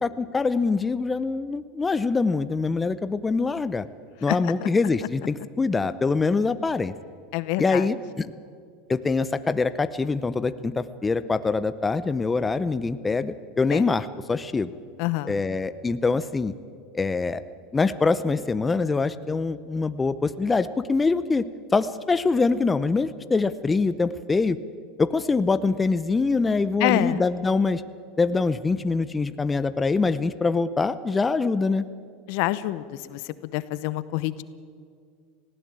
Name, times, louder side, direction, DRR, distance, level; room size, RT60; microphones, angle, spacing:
voice 1, 0.0-3.9 4.2-6.9 7.6-8.3 8.9-14.7 15.2-16.5 16.9-17.4 17.7-21.4 21.7-24.6 25.0-27.8 28.2-31.8, left 4 dB, 15° left, 13 dB, 0.7 m, -24 dB
voice 2, 4.3-4.7 7.3-7.8 13.7-13.8 15.0-15.3 26.8-27.2 32.3-32.8 33.1-33.2 33.5-34.4, left 16 dB, 65° left, 16 dB, 0.8 m, -26 dB
19.5 x 15.5 x 8.9 m, 2.2 s
supercardioid pair, 120°, 0 cm